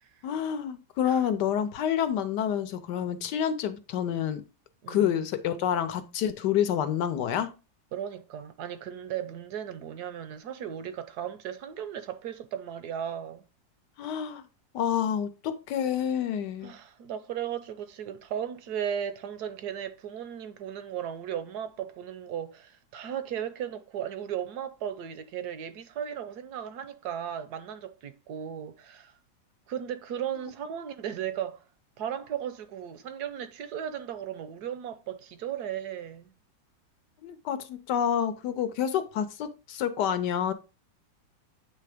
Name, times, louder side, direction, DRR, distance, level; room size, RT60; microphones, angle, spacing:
voice 1, 0.2-4.4 4.9-7.5 14.0-14.4 14.7-16.7 37.2-40.5, left 9 dB, 70° left, 1.2 m, -28 dB
voice 2, 4.8-5.2 7.9-13.4 16.6-29.1 29.7-31.6 32.0-36.3, right 9 dB, 65° right, 1.1 m, -36 dB
8.4 x 3.4 x 4.9 m
omnidirectional pair, 2.1 m